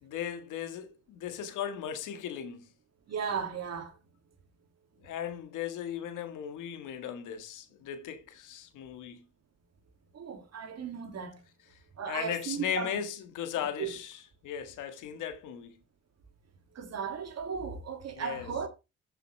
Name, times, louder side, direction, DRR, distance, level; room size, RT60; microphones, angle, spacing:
voice 1, 0.0-2.7 5.0-9.2 12.1-15.8 18.1-18.5, left 9 dB, 90° left, 1.8 m, -37 dB
voice 2, 3.1-3.9 10.1-11.4 12.0-13.0 13.8-13.9 16.7-18.7, right 6 dB, 60° right, 2.7 m, -36 dB
14.0 x 6.9 x 3.4 m
cardioid pair, 90°, 30 cm